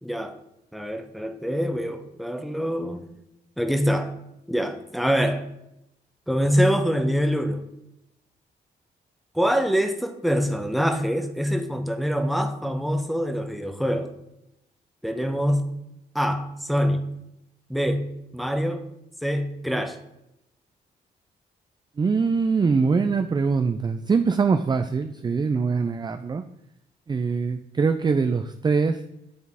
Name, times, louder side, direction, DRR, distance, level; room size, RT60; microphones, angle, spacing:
voice 1, 0.0-0.4 0.7-3.0 3.6-4.1 4.5-5.4 6.3-7.7 9.3-14.1 15.0-15.6 16.1-17.0 17.7-18.0 18.3-18.8 19.2-20.0, equal, ahead, 6 dB, 0.9 m, -24 dB
voice 2, 22.0-26.4 27.1-29.0, right 5 dB, 20° right, 8 dB, 0.4 m, -23 dB
9.5 x 4.0 x 3.5 m, 0.85 s
hypercardioid pair, 40°, 20 cm